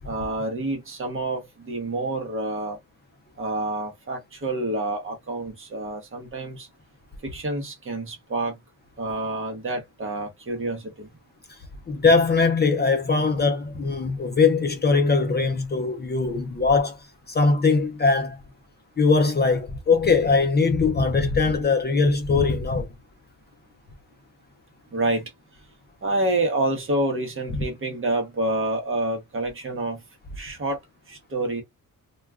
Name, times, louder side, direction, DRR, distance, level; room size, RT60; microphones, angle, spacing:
voice 1, 0.0-2.8 3.4-6.7 7.2-8.6 9.0-11.1 24.9-25.3 26.0-30.0 30.4-30.8 31.1-31.6, right 2 dB, 35° right, 0.9 m, -28 dB
voice 2, 11.9-17.0 17.3-18.4 19.0-22.9, left 4 dB, 30° left, 0.5 m, -21 dB
2.3 x 2.2 x 3.4 m
wide cardioid pair, 155°, 35 cm